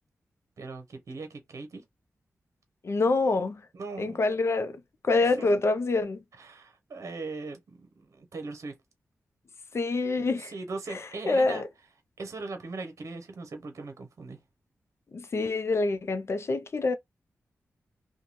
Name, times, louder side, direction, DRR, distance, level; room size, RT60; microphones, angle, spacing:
voice 1, 0.6-1.8 3.7-4.3 5.2-5.5 6.3-8.7 10.2-11.6 12.2-14.4, right 3 dB, 70° right, 0.8 m, -39 dB
voice 2, 2.8-3.6 4.0-6.2 9.7-10.5 10.9-11.0 11.3-11.6 15.1-16.9, left 3 dB, 55° left, 0.6 m, -26 dB
2.6 x 2.2 x 3.0 m
cardioid pair, 45°, 5 cm